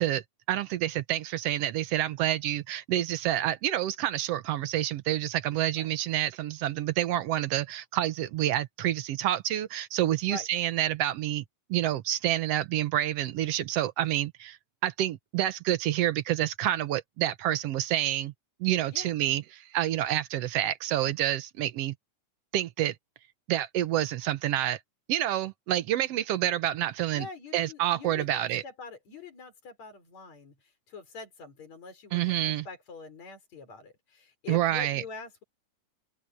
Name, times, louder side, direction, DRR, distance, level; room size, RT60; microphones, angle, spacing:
voice 1, 0.0-11.4 11.7-14.6 14.8-18.3 18.6-22.0 22.5-23.0 23.5-24.8 25.1-27.3 27.5-28.6 32.1-32.7 34.5-35.0, right 13 dB, 65° right, 1.8 m, -28 dB
voice 2, 27.1-30.5 30.9-32.4 32.6-35.4, left 4 dB, 65° left, 6.6 m, -44 dB
open air
omnidirectional pair, 3.4 m